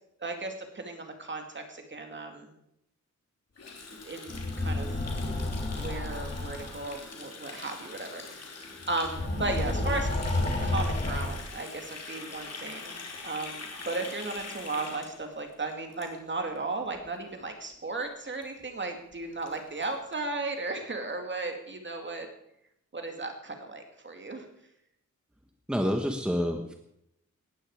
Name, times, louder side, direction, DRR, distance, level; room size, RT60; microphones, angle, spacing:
voice 1, 0.2-2.5 3.9-5.0 5.3-10.1 10.6-22.3 22.9-24.5, right 3 dB, 35° right, 4 dB, 2.5 m, -35 dB
Water tap faucet, 3.6-16.6 16.9-17.1 17.4-17.7 18.0-18.1 18.3-18.4 18.8-18.9 19.1-20.2, left 4 dB, 55° left, 3.2 m, -44 dB
sound 1, 4.3-6.8 8.8-11.3, left 2 dB, 30° left, 3.8 m, -30 dB
voice 2, 25.7-26.7, equal, 5° right, 4 dB, 1.3 m, -28 dB
18.5 x 14.5 x 4.9 m, 0.79 s
wide cardioid pair, 175°, 31 cm